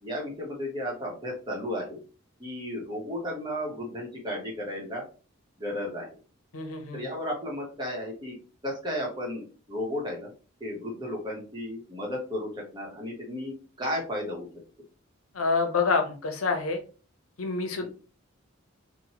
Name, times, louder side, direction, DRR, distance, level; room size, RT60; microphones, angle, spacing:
voice 1, 0.0-2.0 2.4-5.1 5.6-6.1 6.9-8.4 8.6-10.3 10.6-14.5 17.8-17.9, left 1 dB, 20° right, -2 dB, 0.8 m, -34 dB
voice 2, 6.5-7.1 15.3-16.8 17.4-17.9, left 4 dB, 85° left, 5 dB, 0.7 m, -27 dB
3.0 x 2.1 x 2.8 m, 0.36 s
head